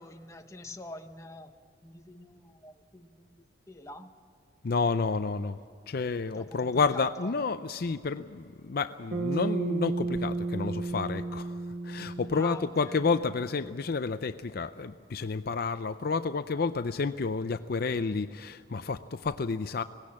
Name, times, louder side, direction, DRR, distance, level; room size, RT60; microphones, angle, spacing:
voice 1, 0.0-1.5 1.8-4.1 6.3-7.3 12.3-13.1, left 2 dB, 15° left, 5 dB, 1.1 m, -46 dB
voice 2, 4.6-5.6 5.9-11.6 11.8-19.8, left 4 dB, 55° left, 11 dB, 0.5 m, -30 dB
Bass guitar, 9.1-13.5, right 3 dB, 50° right, 1.2 m, -33 dB
19.5 x 16.5 x 8.6 m, 2.3 s
head